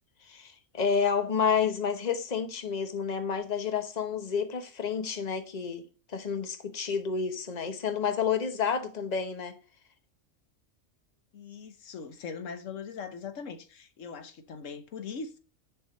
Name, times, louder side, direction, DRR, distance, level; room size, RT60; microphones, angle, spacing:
voice 1, 0.2-5.8 6.1-9.6, left 6 dB, 35° left, 1.1 m, -30 dB
voice 2, 11.3-15.4, left 5 dB, 90° left, 1.3 m, -40 dB
7.9 x 7.1 x 4.0 m
omnidirectional pair, 1.3 m